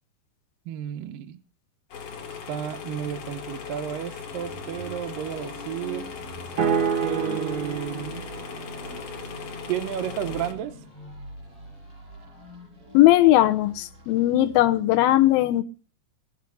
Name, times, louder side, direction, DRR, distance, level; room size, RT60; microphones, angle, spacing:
voice 1, 0.7-1.4 2.5-6.1 7.0-8.2 9.7-10.8, right 10 dB, 70° right, 2.3 m, -32 dB
sound 1, 1.9-10.5, left 6 dB, 55° left, 3.1 m, -38 dB
sound 2, 4.2-15.0, right 1 dB, 35° right, 6.2 m, -45 dB
sound 3, 6.6-10.7, right 6 dB, 55° right, 1.6 m, -30 dB
voice 2, 12.9-15.6, left 15 dB, 75° left, 2.4 m, -18 dB
18.0 x 6.8 x 7.6 m
omnidirectional pair, 5.0 m